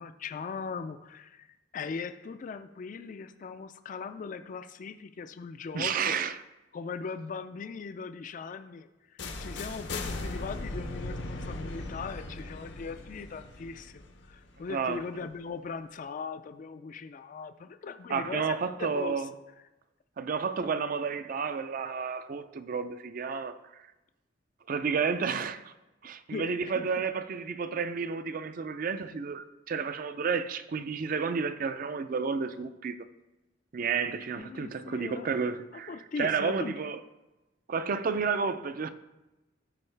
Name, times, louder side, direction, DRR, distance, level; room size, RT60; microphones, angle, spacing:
voice 1, 0.0-1.5 1.7-6.2 6.7-14.0 14.3-19.3 26.3-26.9 34.4-35.3 35.7-36.8, left 5 dB, 45° left, 0.3 m, -39 dB
voice 2, 5.7-6.4 14.7-15.0 18.1-19.3 20.2-23.8 24.7-25.7 26.0-33.0 33.7-37.0 37.7-38.9, right 5 dB, 45° right, 0.4 m, -31 dB
sound 1, 9.2-15.0, left 2 dB, 65° left, 0.7 m, -38 dB
12.5 x 4.6 x 3.3 m
head